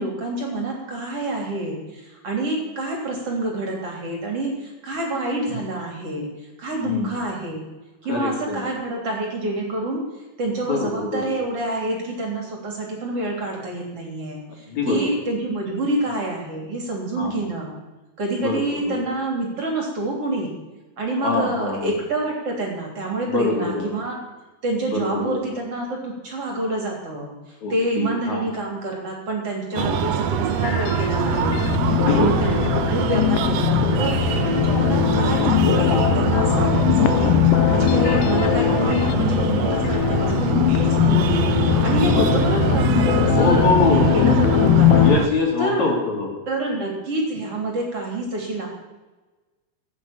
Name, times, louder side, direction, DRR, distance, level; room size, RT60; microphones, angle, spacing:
voice 1, 0.0-7.7 8.0-10.0 10.4-17.8 18.2-20.5 21.0-24.2 24.6-37.3 37.7-45.1 45.6-45.9 46.5-48.7, right 2 dB, 45° right, -1 dB, 4.0 m, -27 dB
voice 2, 8.1-8.6 10.7-11.2 14.7-15.1 17.2-17.4 18.4-18.6 18.9-19.0 21.2-21.9 23.2-23.9 24.9-25.4 27.6-28.4 29.7-30.0 31.8-32.4 41.7-42.4 43.3-44.0 45.0-46.3, left 3 dB, 55° left, 0 dB, 4.5 m, -24 dB
Breathing, 29.8-45.3, right 7 dB, 75° right, 1.5 m, -23 dB
sound 1, 30.5-45.2, left 14 dB, 85° left, 2.3 m, -20 dB
17.5 x 8.1 x 8.8 m, 1.2 s
omnidirectional pair, 3.9 m